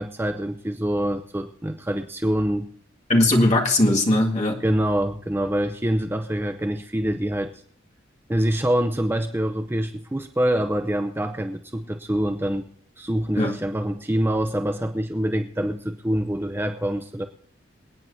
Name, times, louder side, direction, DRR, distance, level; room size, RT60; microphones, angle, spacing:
voice 1, 0.0-2.7 4.6-7.5 8.3-12.6 13.0-17.3, right 1 dB, 10° right, 6 dB, 0.6 m, -25 dB
voice 2, 3.1-4.6 13.4-13.5, left 1 dB, 35° left, -1 dB, 2.0 m, -19 dB
27.5 x 9.1 x 2.7 m, 0.64 s
head